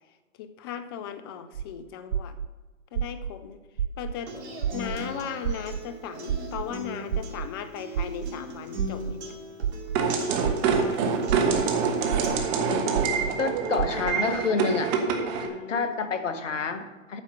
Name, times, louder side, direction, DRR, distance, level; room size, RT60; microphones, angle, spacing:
voice 1, 0.4-2.4 2.9-3.6 4.0-4.4 4.7-9.4 10.6-11.2 11.5-12.2 12.6-12.9 15.4-15.9, left 8 dB, 20° left, 11 dB, 0.4 m, -38 dB
sound 1, 1.5-1.6 2.1-2.5 3.0-3.3 3.8-4.1 4.6-5.0 5.4-5.8 6.3-6.6 7.1-7.5 8.0-8.3 8.8-9.1 9.6-10.0 10.4-10.8 11.3-11.6 12.1-12.5 13.0-13.3 13.8-14.1, right 9 dB, 85° right, 0.6 m, -28 dB
Human voice / Acoustic guitar, 4.3-12.3, right 1 dB, 55° right, 2.5 m, -40 dB
sound 2, 10.0-15.5, right 5 dB, 30° right, 1.3 m, -26 dB
voice 2, 13.4-15.0 15.7-17.2, left 4 dB, 70° left, 10 dB, 1.3 m, -28 dB
9.0 x 6.6 x 6.7 m, 1.2 s
hypercardioid pair, 125°, 39 cm